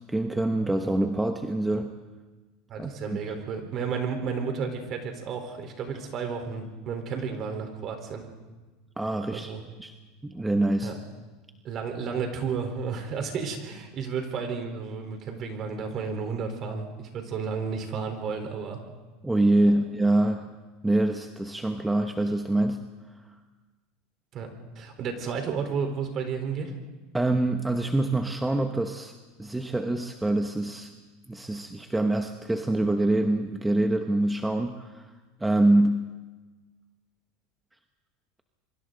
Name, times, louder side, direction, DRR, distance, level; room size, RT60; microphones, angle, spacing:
voice 1, 0.0-1.9 2.8-2.9 9.0-9.5 9.8-9.9 10.2-10.9 19.2-20.5 20.8-22.8 27.1-29.1 29.4-30.9 31.3-35.1 35.4-36.1, right 1 dB, 10° right, 5 dB, 1.1 m, -25 dB
voice 2, 2.7-8.3 9.3-9.6 10.8-11.0 11.6-18.8 19.7-19.8 24.3-24.5 24.8-26.7, right 5 dB, 45° right, 5 dB, 4.2 m, -32 dB
28.5 x 23.5 x 4.0 m, 1.3 s
supercardioid pair, 110°, 0 cm